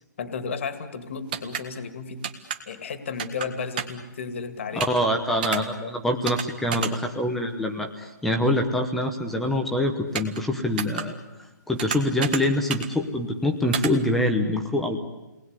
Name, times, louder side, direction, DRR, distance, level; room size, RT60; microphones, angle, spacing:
voice 1, 0.2-2.2 2.7-4.9, left 5 dB, 40° left, 10 dB, 2.2 m, -33 dB
sound 1, 1.3-1.6 2.2-2.6 3.2-3.5 3.8-4.0 4.8-5.0 5.4-5.6 6.3-6.5 6.7-6.9 10.2-10.4 10.8-11.0 11.8-12.4 12.7-12.9 13.7-13.9, right 8 dB, 25° right, 1.6 m, -29 dB
voice 2, 4.8-11.2 11.7-15.0, left 1 dB, ahead, 4 dB, 0.8 m, -25 dB
29.5 x 20.0 x 9.7 m, 1.1 s
hypercardioid pair, 175°, 10 cm